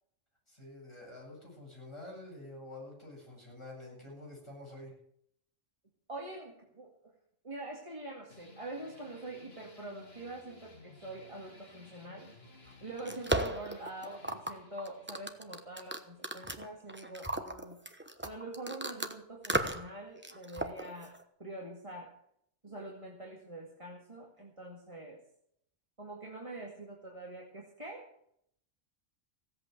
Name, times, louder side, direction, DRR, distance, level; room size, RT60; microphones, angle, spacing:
voice 1, 0.5-5.0, left 1 dB, 25° left, -3 dB, 8.0 m, -48 dB
voice 2, 6.1-6.9 7.4-12.3 12.8-17.8 18.2-21.1 21.4-22.1 22.6-25.2 26.0-28.1, right 2 dB, 25° right, -2 dB, 2.3 m, -45 dB
sound 1, 8.3-17.3, left 3 dB, 55° left, 2.8 m, -57 dB
sound 2, 12.7-19.1 19.4-19.9 20.2-21.2, right 1 dB, 10° right, 1.0 m, -36 dB
16.0 x 8.4 x 8.2 m, 0.71 s
omnidirectional pair, 1.2 m